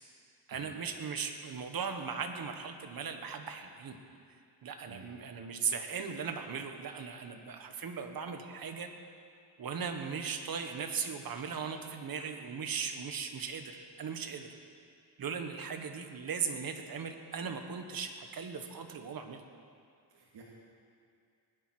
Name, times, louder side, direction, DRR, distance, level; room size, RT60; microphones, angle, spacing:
voice 1, 0.5-4.0 4.6-8.9 9.6-14.5 15.2-19.4, right 6 dB, 55° right, 6 dB, 1.5 m, -38 dB
voice 2, 20.1-20.4, right 5 dB, 70° right, -5 dB, 2.5 m, -52 dB
19.0 x 10.5 x 6.2 m, 2.3 s
cardioid pair, 110°, 43 cm